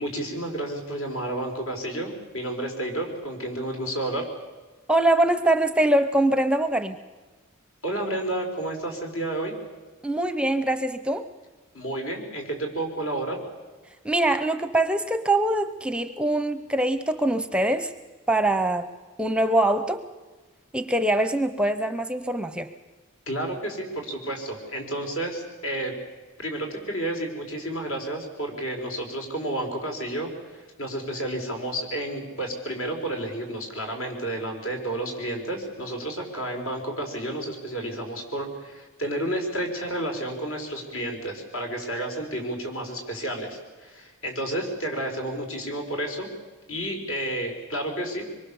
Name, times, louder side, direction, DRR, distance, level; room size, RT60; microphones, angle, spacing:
voice 1, 0.0-4.3 7.8-9.5 11.7-13.4 23.3-25.9 26.4-46.3 46.7-48.3, right 1 dB, 70° left, 3 dB, 4.9 m, -31 dB
voice 2, 4.9-7.0 10.0-11.3 14.0-17.9 18.3-18.9 19.2-20.0 20.7-22.7, right 1 dB, 5° right, 10 dB, 0.7 m, -23 dB
25.0 x 23.0 x 7.1 m, 1.3 s
head